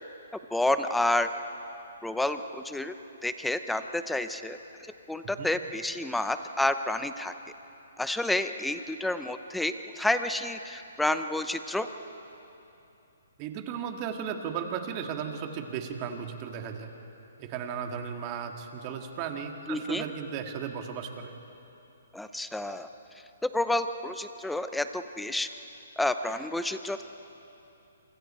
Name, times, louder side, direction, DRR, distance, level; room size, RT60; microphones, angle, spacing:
voice 1, 0.5-1.3 2.0-2.9 3.2-4.6 5.1-7.3 8.0-11.9 19.7-20.0 22.1-22.9 23.4-25.5 26.0-27.0, left 1 dB, 5° left, 9 dB, 0.8 m, -29 dB
voice 2, 13.4-16.9 17.4-21.4, right 7 dB, 30° right, 4 dB, 2.0 m, -35 dB
27.0 x 26.0 x 4.4 m, 2.9 s
hypercardioid pair, 155°, 0 cm